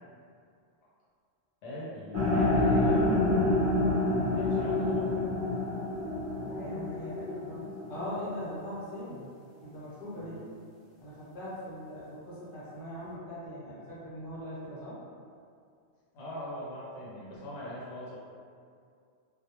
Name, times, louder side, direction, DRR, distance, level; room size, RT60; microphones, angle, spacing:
voice 1, 1.6-3.4 4.3-5.1 10.2-10.5 16.1-18.2, equal, 75° left, -7 dB, 0.9 m, -41 dB
sound 1, 2.1-8.3, left 2 dB, 15° right, 0.7 m, -28 dB
voice 2, 6.4-7.6 7.9-9.3 9.6-10.4 11.0-15.0, equal, 55° left, -10 dB, 1.0 m, -40 dB
2.2 x 2.0 x 2.8 m, 2.3 s
omnidirectional pair, 1.1 m